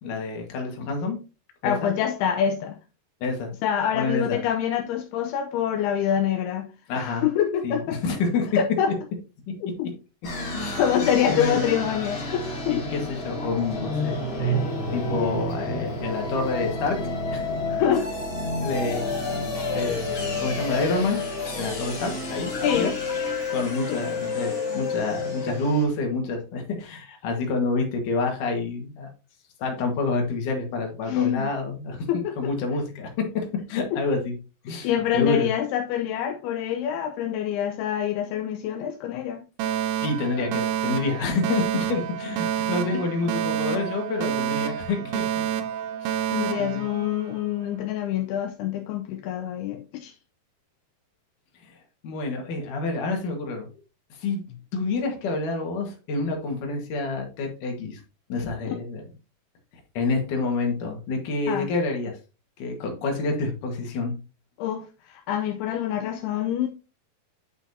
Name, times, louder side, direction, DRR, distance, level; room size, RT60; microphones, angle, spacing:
voice 1, 0.0-1.2 1.6-1.9 3.2-3.5 3.9-4.4 6.9-7.2 7.6-8.5 10.5-10.8 11.3-11.6 12.7-17.0 17.3-17.5 18.6-19.2 19.7-21.2 21.6-22.9 23.5-29.1 29.6-34.3 34.6-35.5 40.0-45.3 46.0-46.1 46.6-46.8 51.6-51.8 52.0-53.7 54.2-54.4 54.7-58.0 58.3-59.0 59.9-62.2 62.6-64.1, left 3 dB, 60° left, 2.9 m, -28 dB
voice 2, 1.6-2.8 3.6-8.0 8.6-8.9 9.6-9.9 10.8-12.9 17.8-18.1 22.6-22.9 23.9-24.0 31.1-31.5 32.1-32.5 33.9-34.0 34.8-39.5 42.9-43.0 46.3-50.1 61.5-61.7 64.6-66.7, left 9 dB, 80° left, 2.6 m, -26 dB
sound 1, 10.2-25.8, left 2 dB, 35° left, 2.5 m, -29 dB
Alarm, 39.6-47.6, right 10 dB, 75° right, 2.7 m, -29 dB
9.8 x 5.8 x 2.8 m
omnidirectional pair, 4.8 m